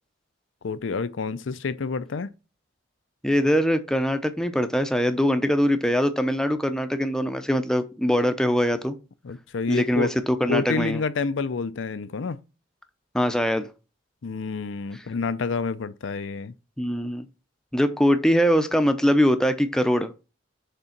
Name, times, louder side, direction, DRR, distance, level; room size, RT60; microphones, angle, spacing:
voice 1, 0.6-2.3 9.2-10.1 10.5-12.4 14.2-16.5, left 4 dB, 70° left, 0.5 m, -28 dB
voice 2, 3.2-9.0 9.7-11.0 13.1-13.7 16.8-17.3 17.7-20.1, equal, 5° left, 0.6 m, -22 dB
6.7 x 3.6 x 5.8 m
head